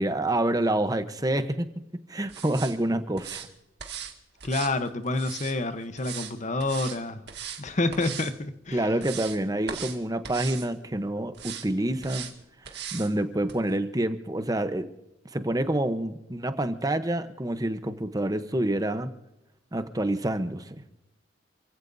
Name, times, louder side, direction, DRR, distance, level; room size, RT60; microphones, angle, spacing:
voice 1, 0.0-1.7 2.1-3.5 8.7-12.3 12.6-14.9 15.3-19.1 19.7-20.8, right 1 dB, 20° right, 0.8 m, -27 dB
sound 1, 2.3-2.7 3.2-3.5 3.8-4.1 4.4-5.6 6.0-6.3 6.6-7.0 7.3-7.6 7.9-8.3 8.7-9.4 9.7-10.0 10.2-10.7 11.3-11.7 12.0-12.3 12.7-13.1 13.5-13.6, right 8 dB, 55° right, 2.1 m, -38 dB
voice 2, 4.4-7.2 7.6-8.9, left 2 dB, 35° left, 0.9 m, -28 dB
28.5 x 16.5 x 2.7 m
head